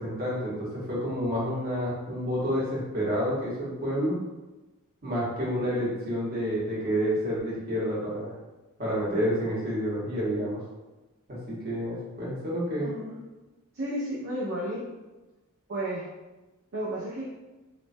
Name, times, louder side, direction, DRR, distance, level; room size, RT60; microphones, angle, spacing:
voice 1, 0.0-4.2 5.0-8.3 8.8-10.6 11.3-12.9, equal, 45° right, -6 dB, 1.0 m, -29 dB
voice 2, 12.8-13.2 13.7-14.9 15.7-16.1 16.7-17.3, right 1 dB, 60° right, -7 dB, 0.5 m, -32 dB
3.0 x 2.2 x 2.6 m, 1.1 s
head